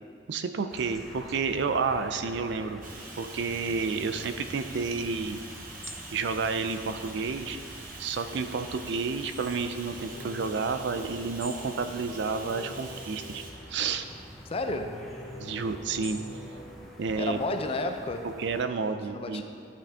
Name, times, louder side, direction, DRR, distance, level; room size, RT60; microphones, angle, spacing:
voice 1, 0.3-2.8 3.2-5.4 6.1-7.6 8.0-13.4 13.7-14.1 15.3-16.2 17.0-17.4 18.4-19.4, right 4 dB, 65° right, 9 dB, 0.4 m, -30 dB
sound 1, 0.7-18.7, equal, ahead, 0.8 m, -46 dB
Bathtub (filling or washing), 2.8-13.5, right 3 dB, 50° right, 1.0 m, -45 dB
sound 2, 9.8-14.1 15.0-16.7, left 2 dB, 80° left, 1.9 m, -47 dB
voice 2, 14.5-15.2 17.2-18.3 19.1-19.4, left 2 dB, 30° left, 6 dB, 0.5 m, -31 dB
11.0 x 5.3 x 3.5 m, 2.4 s
head